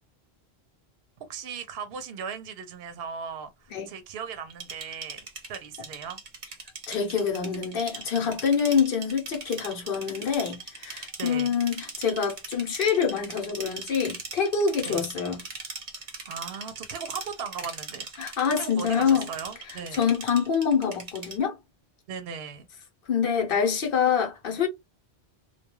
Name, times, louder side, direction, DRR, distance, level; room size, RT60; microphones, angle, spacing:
voice 1, 1.2-5.2 5.5-6.2 11.2-11.5 14.9-15.1 16.3-18.1 18.6-20.1 22.1-22.7, right 6 dB, 70° right, 0.8 m, -37 dB
sound 1, 4.5-21.4, right 4 dB, 40° right, 0.7 m, -40 dB
voice 2, 6.9-15.4 18.2-19.3 19.7-21.6 23.1-24.7, left 6 dB, 60° left, 0.9 m, -26 dB
2.3 x 2.2 x 2.9 m
omnidirectional pair, 1.1 m